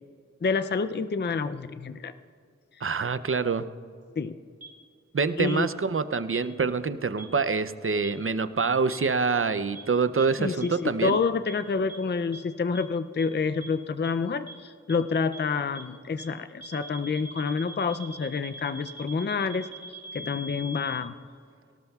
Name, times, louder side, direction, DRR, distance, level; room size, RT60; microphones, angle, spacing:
voice 1, 0.4-2.1 4.2-4.4 5.4-5.7 10.4-19.7 20.1-21.1, left 5 dB, 40° left, 11 dB, 0.4 m, -28 dB
voice 2, 2.8-3.7 5.1-11.2, right 4 dB, 45° right, 13 dB, 0.5 m, -26 dB
sound 1, 4.6-4.7 5.5-5.6 6.3-6.4 7.2-7.3 8.0-8.1 8.9-9.0 9.7-9.8 10.2-10.3 10.6-10.7 11.0-11.1 11.5-11.6 11.9-12.0 12.3-12.4 12.7-12.8 13.2-13.3 13.6-13.7 14.0-14.1 14.5-14.6 14.9-15.0 15.3-15.4 15.7-15.8 16.2-16.3 16.6-21.0, right 2 dB, 70° right, 2.9 m, -41 dB
18.0 x 18.0 x 2.3 m, 2.2 s
wide cardioid pair, 45°, 29 cm